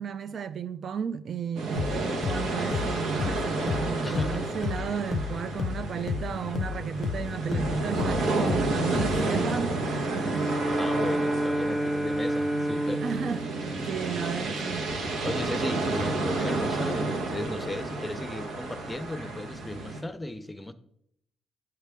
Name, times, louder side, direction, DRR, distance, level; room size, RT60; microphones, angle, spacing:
voice 1, 0.0-10.6 13.0-13.5 13.9-14.9, right 7 dB, 60° right, 0.4 m, -33 dB
sound 1, 1.6-20.0, right 2 dB, 80° right, 1.2 m, -31 dB
sound 2, 1.8-9.4, left 6 dB, 55° left, 0.4 m, -33 dB
voice 2, 4.0-4.5 10.6-13.0 15.2-20.7, left 1 dB, 15° left, 0.7 m, -35 dB
Bowed string instrument, 10.2-14.8, right 1 dB, 10° right, 0.9 m, -30 dB
8.1 x 6.6 x 3.5 m
supercardioid pair, 60°, 0 cm